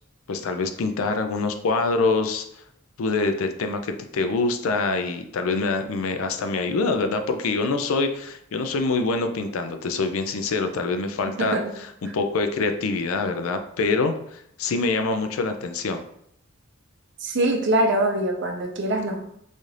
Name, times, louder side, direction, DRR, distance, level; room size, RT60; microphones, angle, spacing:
voice 1, 0.3-2.5 3.0-16.0, left 3 dB, 75° left, 7 dB, 0.4 m, -25 dB
voice 2, 17.2-19.2, right 1 dB, 55° right, 2 dB, 0.6 m, -23 dB
4.0 x 2.4 x 3.2 m, 0.72 s
head